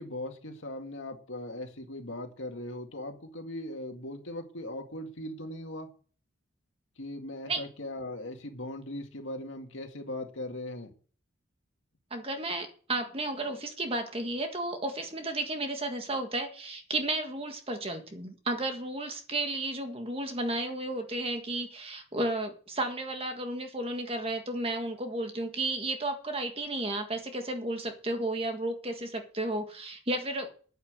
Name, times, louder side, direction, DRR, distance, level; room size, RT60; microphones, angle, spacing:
voice 1, 0.0-5.9 7.0-10.9, left 1 dB, 70° left, 4 dB, 2.1 m, -39 dB
voice 2, 12.1-30.5, right 2 dB, 30° right, 5 dB, 1.7 m, -33 dB
9.9 x 9.2 x 6.7 m, 0.42 s
head